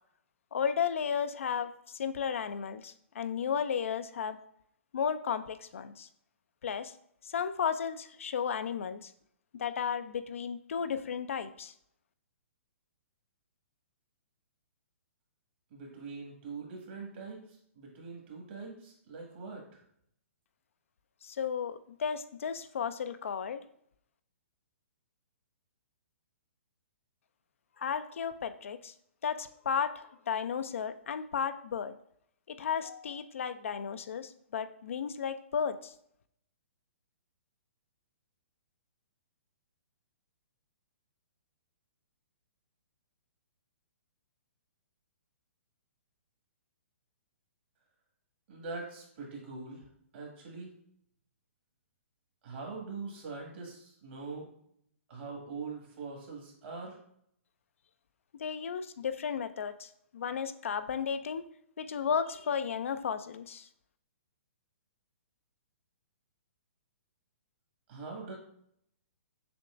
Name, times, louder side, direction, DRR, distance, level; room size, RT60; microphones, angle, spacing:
voice 1, 0.5-4.4 4.9-6.1 6.6-6.9 7.2-9.1 9.6-11.7 21.2-23.6 27.8-28.9 29.2-31.9 32.5-35.9 58.4-61.4 61.8-63.7, left 7 dB, 65° left, 11 dB, 0.4 m, -34 dB
voice 2, 15.7-19.8 48.5-49.9 50.1-50.7 52.4-54.5 55.1-57.0 67.9-68.3, right 4 dB, 50° right, 0 dB, 1.7 m, -43 dB
6.9 x 2.9 x 2.5 m, 0.69 s
figure-of-eight pair, 125°, 8 cm